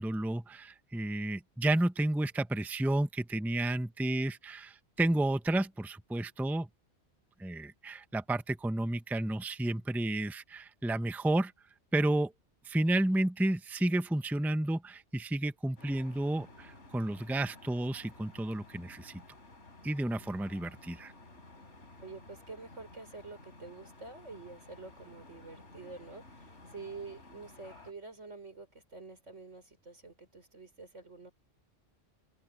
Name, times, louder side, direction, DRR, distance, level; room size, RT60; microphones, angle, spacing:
voice 1, 0.0-6.7 7.4-11.5 11.9-12.3 12.6-19.2 19.8-21.1, right 1 dB, ahead, 0.7 m, -31 dB
sound 1, 15.8-27.9, left 2 dB, 80° left, 4.0 m, -54 dB
voice 2, 22.0-31.3, right 3 dB, 90° right, 5.6 m, -48 dB
omnidirectional pair, 1.2 m